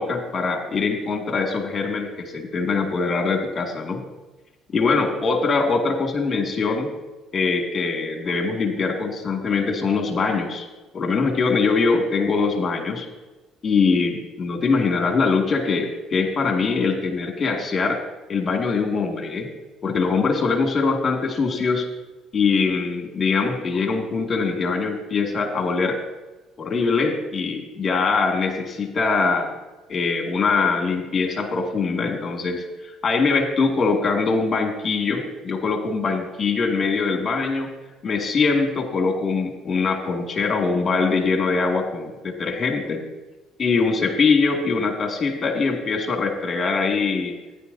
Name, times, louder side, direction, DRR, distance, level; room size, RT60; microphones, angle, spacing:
voice 1, 0.0-4.0 4.7-6.9 7.3-10.7 10.9-13.1 13.6-18.0 18.3-19.5 19.8-21.9 22.3-26.0 26.6-29.5 29.9-37.7 38.0-43.0 43.6-47.3, left 4 dB, 35° left, 2 dB, 2.4 m, -22 dB
15.0 x 10.5 x 2.8 m, 1.1 s
supercardioid pair, 85°, 0 cm